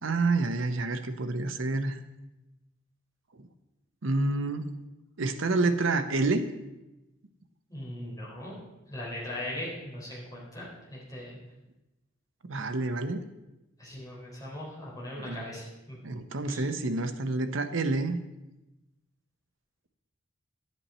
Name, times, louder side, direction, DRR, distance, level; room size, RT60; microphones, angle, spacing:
voice 1, 0.0-2.0 4.0-4.7 5.2-6.4 12.4-13.2 15.2-15.5 16.0-18.2, right 3 dB, 75° right, 8 dB, 0.8 m, -28 dB
voice 2, 7.7-8.6 8.9-11.4 13.8-16.0 16.5-16.6, left 1 dB, 20° left, -6 dB, 3.7 m, -39 dB
11.0 x 8.4 x 4.3 m, 1.0 s
head